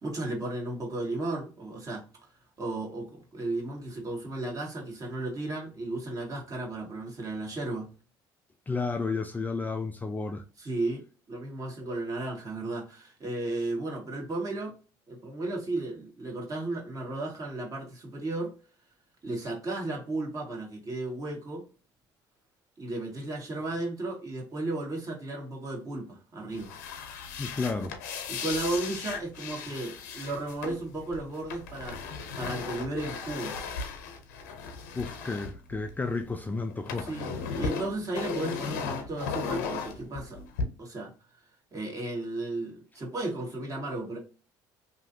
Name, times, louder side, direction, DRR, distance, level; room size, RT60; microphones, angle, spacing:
voice 1, 0.0-2.0 2.6-7.9 10.6-14.8 15.1-18.5 19.2-21.6 22.8-26.7 28.3-33.6 37.0-40.4 40.8-41.1 41.7-44.2, right 2 dB, 35° right, 1.6 m, -34 dB
voice 2, 8.7-10.4 27.4-28.0 34.9-37.1, left 3 dB, 15° left, 0.3 m, -32 dB
sound 1, 26.5-36.3 36.6-40.6, left 5 dB, 85° left, 0.7 m, -36 dB
2.9 x 2.7 x 2.7 m
supercardioid pair, 80°, 10 cm